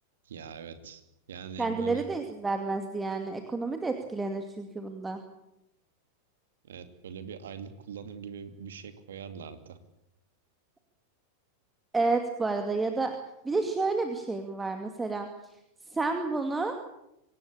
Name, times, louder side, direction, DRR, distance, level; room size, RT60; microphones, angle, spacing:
voice 1, 0.2-1.0 1.3-2.0 6.6-9.8, right 7 dB, 65° right, 9 dB, 2.7 m, -42 dB
voice 2, 1.6-5.2 11.9-13.2 13.4-15.3 15.9-16.8, right 3 dB, 10° right, 5 dB, 2.3 m, -30 dB
25.0 x 18.0 x 8.8 m, 0.84 s
figure-of-eight pair, 90°, 0 cm